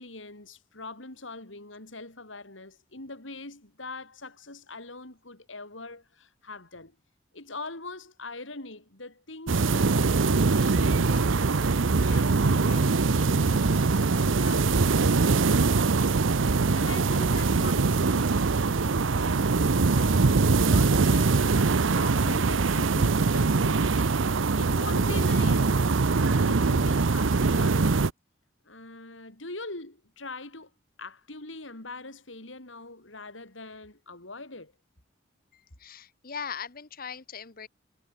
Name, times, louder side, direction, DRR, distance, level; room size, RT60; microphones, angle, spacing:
voice 1, 0.0-6.9 7.3-11.4 12.0-24.1 24.5-25.8 26.1-28.0 28.6-30.7 31.0-34.7, left 2 dB, 80° left, 5.3 m, -42 dB
sound 1, 9.5-28.1, right 4 dB, 90° right, 0.7 m, -23 dB
voice 2, 35.8-37.7, left 7 dB, 50° left, 1.3 m, -39 dB
head